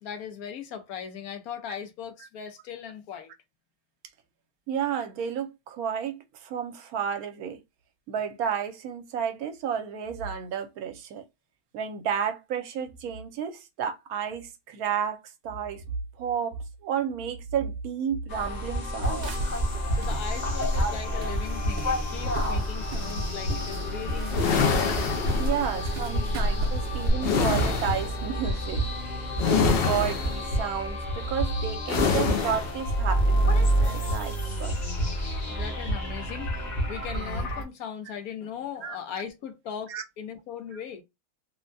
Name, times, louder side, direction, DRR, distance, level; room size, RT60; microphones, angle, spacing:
voice 1, 0.0-3.3 19.9-25.0 25.3-25.9 35.5-41.0, left 8 dB, 75° left, 1.2 m, -39 dB
voice 2, 4.7-7.6 8.1-11.2 11.7-15.8 16.2-19.3 25.4-28.8 29.4-34.8 38.8-39.0 39.9-40.0, right 7 dB, 75° right, 1.1 m, -31 dB
sound 1, 18.3-37.6, equal, 35° left, 1.0 m, -29 dB
sound 2, 19.0-27.1, equal, 60° right, 0.6 m, -32 dB
sound 3, 24.3-25.9 27.2-28.2 29.4-30.5 31.9-32.8, left 5 dB, 60° left, 0.6 m, -26 dB
3.3 x 2.1 x 2.5 m
omnidirectional pair, 1.6 m